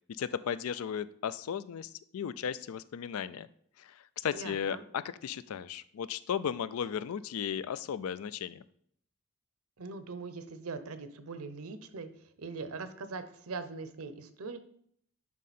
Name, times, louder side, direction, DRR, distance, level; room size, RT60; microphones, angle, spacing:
voice 1, 0.2-3.5 3.8-8.6, left 8 dB, 70° left, 16 dB, 0.3 m, -35 dB
voice 2, 4.3-4.8 9.8-14.6, right 4 dB, 75° right, 11 dB, 0.7 m, -41 dB
10.5 x 3.7 x 4.2 m, 0.64 s
head